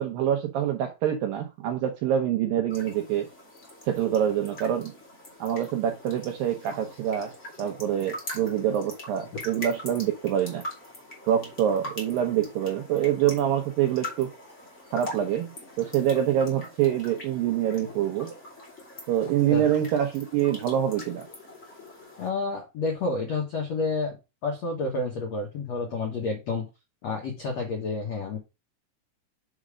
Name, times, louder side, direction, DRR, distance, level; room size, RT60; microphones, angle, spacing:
voice 1, 0.0-3.3 3.9-4.9 5.4-7.3 7.6-10.7 11.3-14.3 14.9-18.3 19.1-21.3, right 10 dB, 90° right, 2.0 m, -26 dB
sound 1, 2.7-22.3, left 1 dB, 25° left, 1.8 m, -43 dB
voice 2, 22.2-24.1 24.4-26.6 27.0-28.4, left 3 dB, 70° left, 1.6 m, -29 dB
6.4 x 5.1 x 4.9 m
omnidirectional pair, 5.1 m